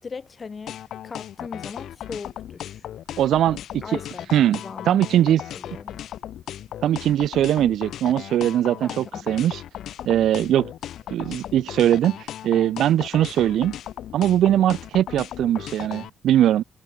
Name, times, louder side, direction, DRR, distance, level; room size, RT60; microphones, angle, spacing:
voice 1, 0.0-2.9 3.8-4.3 4.6-5.2 5.5-6.0 8.8-9.3, left 5 dB, 35° left, 5.7 m, -38 dB
sound 1, 0.7-16.1, left 11 dB, 75° left, 6.9 m, -36 dB
voice 2, 3.2-4.0 4.3-4.6 4.9-5.4 6.8-9.6 10.1-10.7 11.1-13.8 14.1-16.6, right 11 dB, 80° right, 1.9 m, -21 dB
cardioid pair, 120°, 0 cm